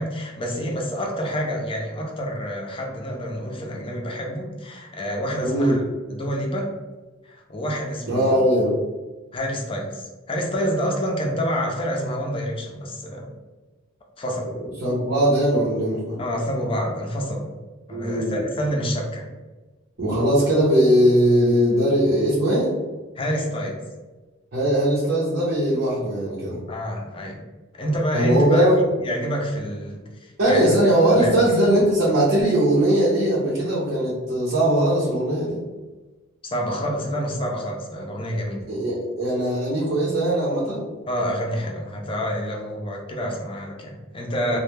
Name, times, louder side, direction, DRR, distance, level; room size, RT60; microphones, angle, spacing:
voice 1, 0.0-5.8 6.1-6.7 7.3-8.4 9.3-13.3 14.2-14.5 16.2-17.5 17.9-19.3 23.2-23.8 26.7-27.4 27.7-28.7 29.0-30.7 31.1-31.4 36.4-38.6 41.1-44.6, equal, 25° left, 0 dB, 0.4 m, -27 dB
voice 2, 5.4-5.8 8.1-8.8 14.8-16.2 17.9-18.4 20.0-22.7 24.5-26.6 28.1-28.8 30.4-35.6 38.7-40.9 44.5-44.6, right 1 dB, 60° right, -7 dB, 0.6 m, -20 dB
2.1 x 2.0 x 3.1 m, 1.2 s
head